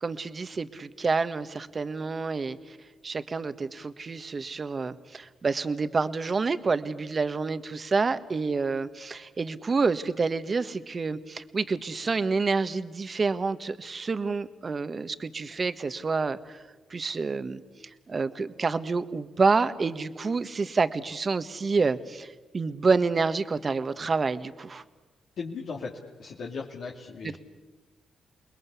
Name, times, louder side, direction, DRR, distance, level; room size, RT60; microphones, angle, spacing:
voice 1, 0.0-2.8 3.0-16.6 16.9-17.6 18.1-24.8 27.2-27.4, right 4 dB, 45° right, 12 dB, 1.4 m, -28 dB
voice 2, 25.4-27.4, left 4 dB, 70° left, -3 dB, 2.7 m, -37 dB
29.5 x 21.0 x 8.4 m, 1.2 s
supercardioid pair, 50°, 0 cm